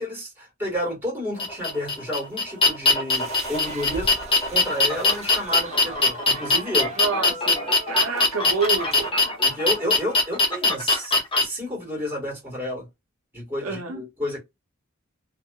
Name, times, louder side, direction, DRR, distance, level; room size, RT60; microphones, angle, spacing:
voice 1, 0.0-4.1 4.5-6.9 9.4-12.9 13.3-14.4, equal, 10° right, 1.6 m, -30 dB
sound 1, 1.4-11.4, left 3 dB, 25° left, 0.6 m, -21 dB
sound 2, 3.1-9.1, right 2 dB, 35° right, 0.8 m, -39 dB
voice 2, 7.0-9.3 13.6-14.0, right 4 dB, 85° right, 0.7 m, -28 dB
2.8 x 2.0 x 2.2 m
head